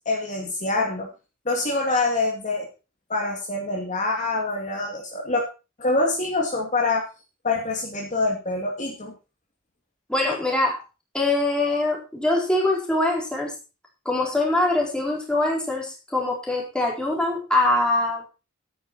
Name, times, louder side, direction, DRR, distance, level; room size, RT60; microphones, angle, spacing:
voice 1, 0.1-1.1 1.5-2.7 3.1-5.4 5.8-7.1 7.4-9.1, left 3 dB, 35° left, 0 dB, 2.7 m, -25 dB
voice 2, 10.1-10.8 11.1-13.5 14.0-18.2, left 2 dB, 5° left, -2 dB, 4.4 m, -23 dB
12.5 x 10.0 x 4.4 m, 0.31 s
head